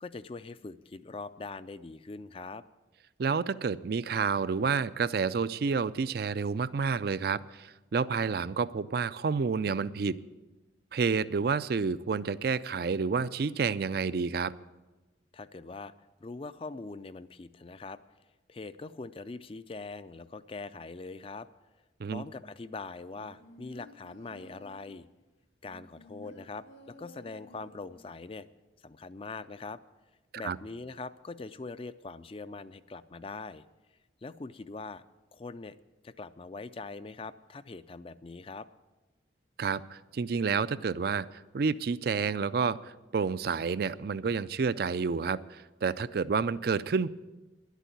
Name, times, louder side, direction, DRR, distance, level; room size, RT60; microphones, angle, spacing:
voice 1, 0.0-2.6 15.3-15.9 16.2-18.0 18.5-21.5 22.0-25.1 25.6-28.5 28.8-29.8 30.4-33.7 34.2-35.0 35.3-35.8 36.0-38.7, left 3 dB, 30° left, 14 dB, 0.4 m, -42 dB
voice 2, 3.2-10.2 10.9-14.5 22.0-22.2 30.4-30.6 39.6-41.3 41.5-42.8 43.1-47.1, right 5 dB, 55° right, 17 dB, 0.4 m, -29 dB
sound 1, 23.1-25.1 25.6-28.0 28.4-28.5, equal, 80° left, 2.6 m, -53 dB
11.5 x 8.3 x 9.2 m, 1.1 s
head